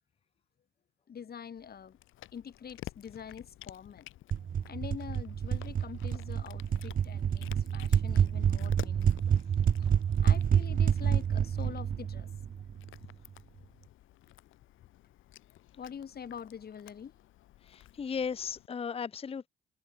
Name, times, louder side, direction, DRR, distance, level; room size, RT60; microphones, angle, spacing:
voice 1, 1.1-2.0 2.3-4.1 4.7-9.4 10.2-12.3 15.7-17.1, left 7 dB, 50° left, 6.7 m, -45 dB
Cat, 1.6-18.7, left 15 dB, 85° left, 2.2 m, -53 dB
sound 1, 4.3-13.0, right 8 dB, 45° right, 0.8 m, -28 dB
voice 2, 17.7-19.5, left 6 dB, 30° left, 0.6 m, -36 dB
cardioid pair, 90°, 20 cm